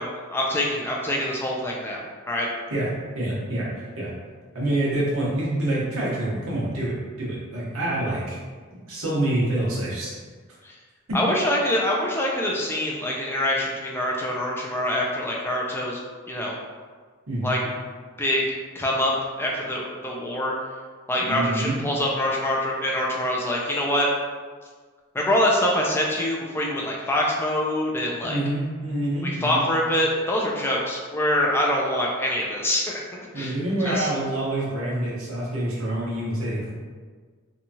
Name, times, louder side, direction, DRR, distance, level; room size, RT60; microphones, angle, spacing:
voice 1, 0.0-2.0 2.3-2.5 10.6-10.7 11.1-16.0 16.3-16.6 17.4-17.6 18.2-18.5 18.7-19.1 19.4-20.5 21.1-24.1 25.1-28.4 29.2-33.0 33.4-33.5 33.8-34.1, left 1 dB, 10° left, -2 dB, 0.3 m, -25 dB
voice 2, 3.1-4.1 4.5-8.4 8.7-10.1 11.1-11.2 17.3-17.5 21.2-21.8 28.2-29.6 33.3-36.7, right 1 dB, 65° right, -7 dB, 0.9 m, -27 dB
2.8 x 2.3 x 2.6 m, 1.5 s
head